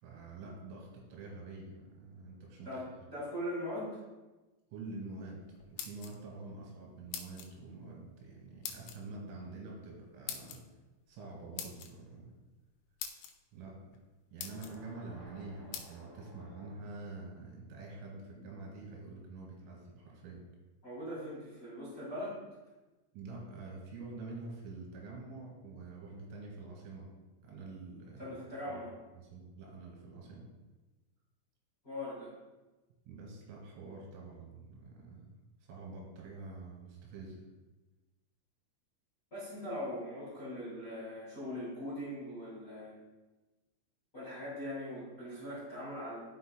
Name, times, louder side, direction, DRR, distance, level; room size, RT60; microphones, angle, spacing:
voice 1, 0.0-2.8 4.7-5.4 5.7-10.6 11.1-12.3 13.5-13.7 14.3-20.4 23.1-27.1 27.4-28.4 28.7-28.8 29.2-30.4 33.1-35.3 35.7-37.4, right 3 dB, 80° right, -1 dB, 4.3 m, -47 dB
voice 2, 2.6-4.0 20.8-22.4 28.2-28.9 31.8-32.3 39.3-42.9 44.1-46.2, left 1 dB, 30° left, -9 dB, 1.6 m, -41 dB
sound 1, 5.6-6.4 7.1-7.5 8.6-9.0 10.3-10.6 11.6-11.9 12.6-12.7 13.0-13.3 13.9-14.0 14.4-14.8 15.7-15.9, left 9 dB, 85° left, 3.1 m, -42 dB
sound 2, 14.4-17.3, equal, 40° right, 2.5 m, -55 dB
12.5 x 5.6 x 2.2 m, 1.1 s
omnidirectional pair, 5.9 m